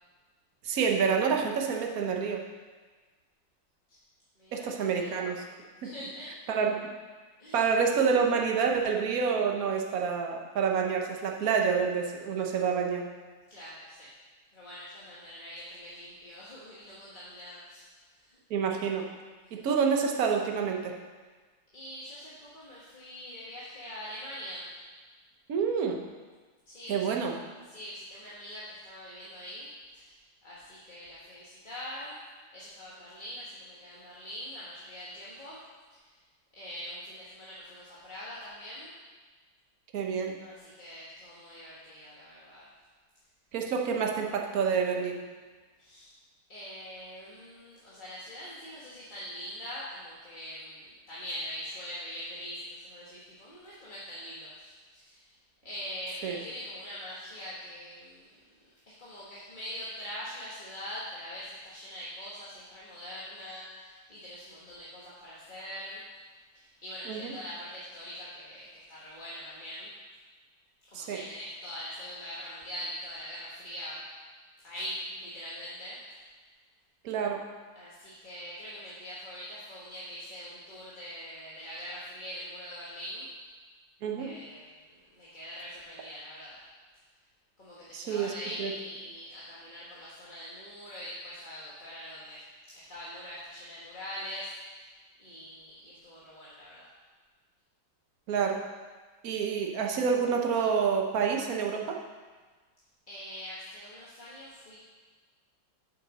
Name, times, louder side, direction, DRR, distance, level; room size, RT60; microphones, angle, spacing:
voice 1, 0.6-2.4 4.5-5.4 5.8-5.9 6.5-6.8 7.5-13.0 18.5-19.1 19.5-20.9 25.5-26.0 26.9-27.3 39.9-40.4 43.5-45.2 56.2-56.4 67.1-67.3 70.9-71.2 77.0-77.4 84.0-84.4 87.9-88.3 88.6-88.7 98.3-98.6 99.2-102.0, right 6 dB, 50° right, 2 dB, 1.2 m, -28 dB
voice 2, 4.4-5.3 5.8-6.3 7.4-7.6 13.5-14.1 14.5-18.4 19.4-19.7 21.7-24.6 26.6-27.1 27.6-29.7 29.9-32.2 32.5-35.6 35.9-36.2 36.6-38.9 40.4-42.6 45.8-46.1 46.5-55.3 55.6-58.4 59.0-66.0 66.5-69.9 70.9-74.0 74.6-76.2 77.7-83.3 84.2-86.6 87.6-92.4 92.7-94.9 95.2-96.9 103.1-104.8, equal, 25° left, -9 dB, 1.5 m, -43 dB
8.6 x 5.9 x 6.3 m, 1.4 s
omnidirectional pair, 2.3 m